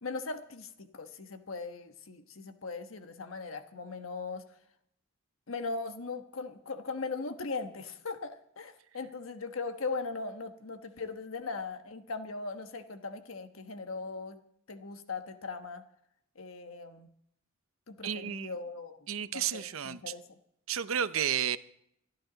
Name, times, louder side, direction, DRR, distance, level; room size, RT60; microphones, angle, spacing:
voice 1, 0.0-4.4 5.5-14.4 14.7-15.8 16.4-17.1 17.9-19.0 19.3-20.4, left 4 dB, 85° left, 1.2 m, -39 dB
voice 2, 18.0-18.6 19.1-20.1 20.7-21.6, right 9 dB, 90° right, 0.6 m, -32 dB
26.0 x 10.5 x 3.9 m
head